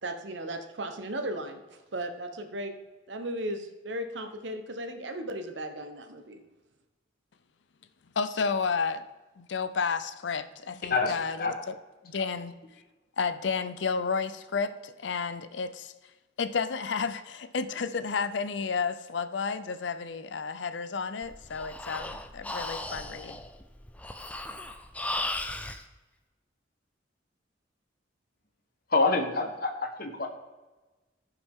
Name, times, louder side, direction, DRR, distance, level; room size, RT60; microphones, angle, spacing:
voice 1, 0.0-1.6 1.9-2.7 3.1-6.4, right 1 dB, 80° right, 6 dB, 1.1 m, -36 dB
voice 2, 8.2-9.0 9.4-11.8 12.0-12.6 13.2-15.9 16.4-23.4, left 5 dB, 80° left, 12 dB, 0.6 m, -31 dB
Breathing, 21.2-25.8, left 2 dB, 10° left, 0.5 m, -36 dB
voice 3, 28.9-30.3, left 3 dB, 50° left, 5 dB, 1.2 m, -26 dB
15.0 x 5.6 x 3.7 m, 1.2 s
head